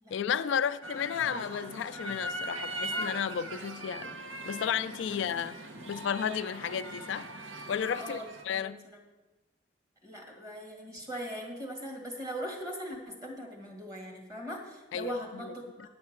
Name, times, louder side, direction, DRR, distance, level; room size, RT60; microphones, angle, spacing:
voice 1, 0.1-4.2 4.5-5.6 5.9-7.3 7.7-8.2 8.5-8.8 14.9-15.1 15.4-15.5, left 8 dB, 75° left, 0.3 m, -32 dB
sound 1, 0.8-8.4, right 1 dB, 90° right, 1.0 m, -40 dB
voice 2, 8.0-9.0 10.0-15.9, equal, 20° right, 1.9 m, -40 dB
9.4 x 7.2 x 7.3 m
head